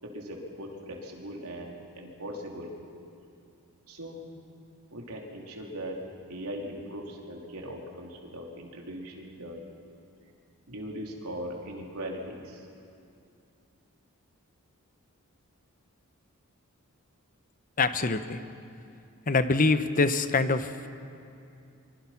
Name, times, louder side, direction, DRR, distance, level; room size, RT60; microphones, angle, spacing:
voice 1, 0.0-2.7 3.9-4.2 4.9-6.0 6.3-9.6 10.7-12.7, equal, 80° right, -1 dB, 3.6 m, -39 dB
voice 2, 17.8-18.4 19.3-20.9, left 3 dB, 40° left, 10 dB, 0.9 m, -25 dB
25.0 x 24.5 x 5.9 m, 2.6 s
head